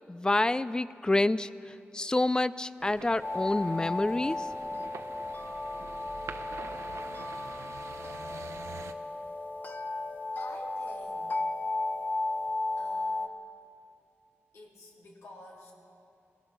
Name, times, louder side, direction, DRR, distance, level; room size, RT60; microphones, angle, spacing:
voice 1, 0.1-4.5, left 2 dB, 15° left, 15 dB, 0.5 m, -28 dB
sound 1, 2.8-8.9, right 6 dB, 90° right, 0.9 m, -46 dB
sound 2, 3.2-13.3, left 2 dB, 40° left, 1.1 m, -35 dB
voice 2, 10.3-11.4 12.8-13.3 14.5-15.7, left 1 dB, 85° left, -4 dB, 3.9 m, -51 dB
24.0 x 18.5 x 6.7 m, 2.5 s
wide cardioid pair, 85°, 5 cm